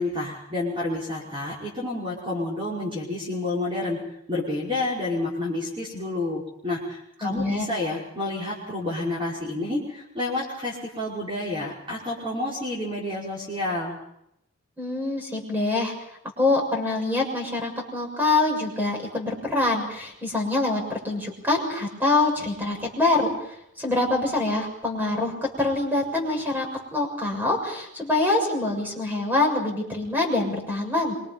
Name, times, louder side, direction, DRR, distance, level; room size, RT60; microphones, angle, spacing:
voice 1, 0.0-4.0 4.3-14.0, left 2 dB, 25° right, -5 dB, 5.5 m, -29 dB
voice 2, 7.2-7.7 14.8-15.9 16.4-26.7 26.9-31.1, left 2 dB, 10° right, 1 dB, 6.8 m, -25 dB
26.5 x 24.5 x 5.5 m, 0.77 s
head